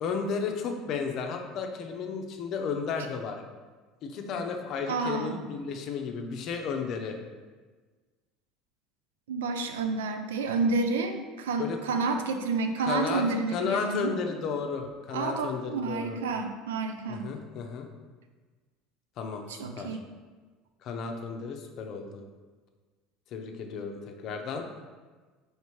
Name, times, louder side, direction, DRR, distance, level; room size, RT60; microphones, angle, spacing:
voice 1, 0.0-3.4 4.0-7.2 11.6-12.0 12.9-16.2 17.1-17.9 19.2-20.0 20.8-22.2 23.3-24.7, left 5 dB, 55° left, 4 dB, 0.6 m, -33 dB
voice 2, 4.9-5.4 9.3-14.1 15.1-17.3 19.5-20.0, right 4 dB, 85° right, 6 dB, 0.4 m, -30 dB
4.3 x 3.2 x 3.1 m, 1.4 s
hypercardioid pair, 80°, 0 cm